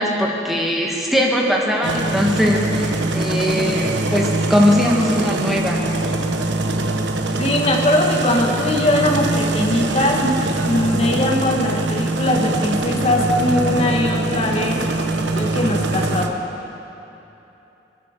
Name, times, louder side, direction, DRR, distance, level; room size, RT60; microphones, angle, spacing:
voice 1, 0.0-5.8, equal, ahead, -2 dB, 1.8 m, -20 dB
sound 1, 1.8-16.3, right 2 dB, 85° right, 1.1 m, -23 dB
voice 2, 7.4-10.4 10.6-14.9 15.3-16.3, left 1 dB, 35° left, 0 dB, 1.7 m, -20 dB
21.5 x 8.7 x 6.8 m, 2.9 s
head